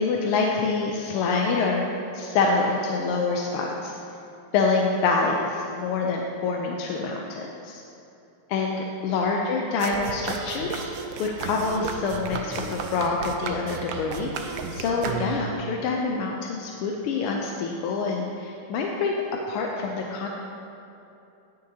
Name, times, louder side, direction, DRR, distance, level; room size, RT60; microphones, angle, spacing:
voice 1, 0.0-1.8 2.1-4.0 4.5-7.8 8.5-19.1 19.5-20.3, left 4 dB, 90° left, 0 dB, 1.6 m, -26 dB
sound 1, 9.8-15.6, right 5 dB, 70° right, 1.2 m, -33 dB
17.5 x 6.5 x 2.8 m, 2.9 s
omnidirectional pair, 2.4 m